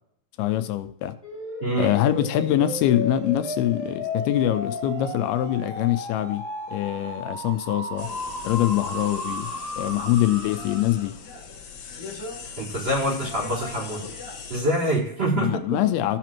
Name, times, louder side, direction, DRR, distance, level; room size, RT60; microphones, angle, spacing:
voice 1, 0.4-1.1 1.8-6.4 6.7-8.1 8.4-9.5 9.8-11.1 15.3-16.2, left 13 dB, 85° left, 2.5 m, -24 dB
sound 1, 1.2-11.1, left 1 dB, 5° right, 2.7 m, -34 dB
sound 2, 8.0-14.6, left 5 dB, 60° left, 2.2 m, -39 dB
voice 2, 12.6-14.1 14.5-15.8, right 1 dB, 30° right, 4.4 m, -25 dB
15.5 x 6.0 x 3.0 m
omnidirectional pair, 4.4 m